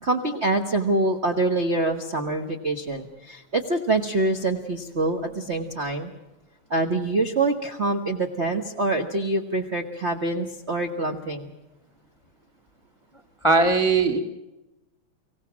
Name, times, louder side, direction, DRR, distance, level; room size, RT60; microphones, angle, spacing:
voice 1, 0.0-6.1 6.7-11.5, right 2 dB, 65° right, 3 dB, 0.6 m, -25 dB
voice 2, 13.4-14.2, right 3 dB, 20° left, 6 dB, 0.9 m, -19 dB
24.5 x 17.0 x 7.4 m, 0.97 s
omnidirectional pair, 3.4 m